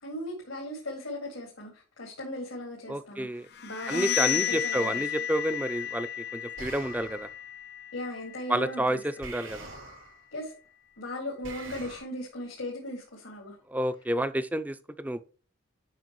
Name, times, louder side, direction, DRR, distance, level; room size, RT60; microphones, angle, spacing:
voice 1, 0.0-3.3 3.6-5.0 7.9-9.0 10.3-10.5 11.0-13.5, left 1 dB, 85° left, 2.2 m, -37 dB
voice 2, 2.9-3.5 3.9-7.3 8.5-9.7 13.7-15.2, right 1 dB, 10° right, 0.4 m, -30 dB
sound 1, 3.5-9.2, left 12 dB, 50° left, 0.5 m, -33 dB
sound 2, 6.6-7.4 9.2-10.3 11.4-12.0, right 3 dB, 85° right, 3.8 m, -44 dB
9.0 x 5.9 x 3.0 m
head